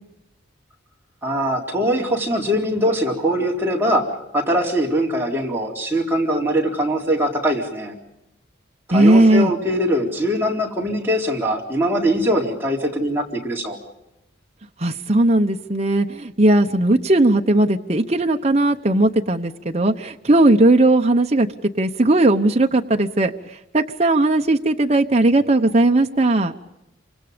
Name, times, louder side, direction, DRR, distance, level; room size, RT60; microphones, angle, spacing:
voice 1, 1.2-8.0 8.9-13.8, equal, 10° right, -2 dB, 4.1 m, -22 dB
voice 2, 8.9-9.5 14.8-21.5 21.8-23.3 23.7-26.5, right 2 dB, 35° right, 4 dB, 1.0 m, -17 dB
28.0 x 26.0 x 5.2 m, 0.92 s
head